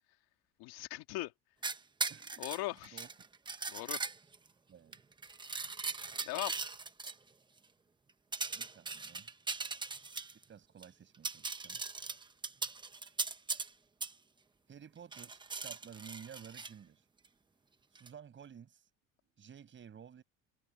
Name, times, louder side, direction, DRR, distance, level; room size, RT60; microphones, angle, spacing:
voice 1, 0.6-1.3 2.4-3.0 3.7-4.0 6.2-6.6, left 19 dB, 65° left, 2.5 m, -39 dB
sound 1, 1.6-4.5 4.9-7.1 8.3-10.4 10.8-10.9 11.1-13.7 14.0-14.1 15.1-16.7 18.0-18.1, right 4 dB, 10° right, 0.9 m, -39 dB
voice 2, 2.1-2.4 2.8-3.1 4.7-5.0 8.5-9.3 10.5-11.8 14.7-17.0 17.9-18.9 19.4-20.2, right 8 dB, 30° right, 6.4 m, -53 dB
cardioid pair, 150°, 40 cm